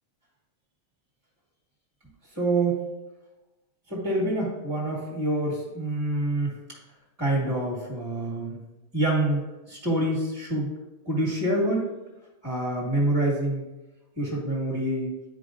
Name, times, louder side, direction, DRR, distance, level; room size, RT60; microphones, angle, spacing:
voice 1, 2.3-2.8 3.9-6.8 7.2-8.6 8.9-10.7 11.0-11.9 12.4-13.6 14.2-15.2, right 1 dB, 10° right, -5 dB, 1.6 m, -26 dB
10.0 x 4.8 x 2.6 m, 1.0 s
omnidirectional pair, 1.6 m